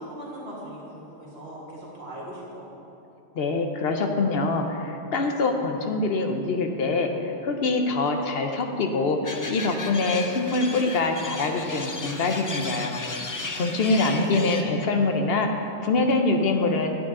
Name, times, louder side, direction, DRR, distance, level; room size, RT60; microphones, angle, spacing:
voice 1, 0.0-2.7 13.5-14.3, right 1 dB, 65° right, -5 dB, 2.2 m, -40 dB
voice 2, 3.3-13.0 13.5-16.9, left 3 dB, 65° left, 4 dB, 0.9 m, -24 dB
sound 1, 9.2-14.6, left 3 dB, 35° left, 0.3 m, -35 dB
9.0 x 8.9 x 3.7 m, 2.8 s
omnidirectional pair, 1.1 m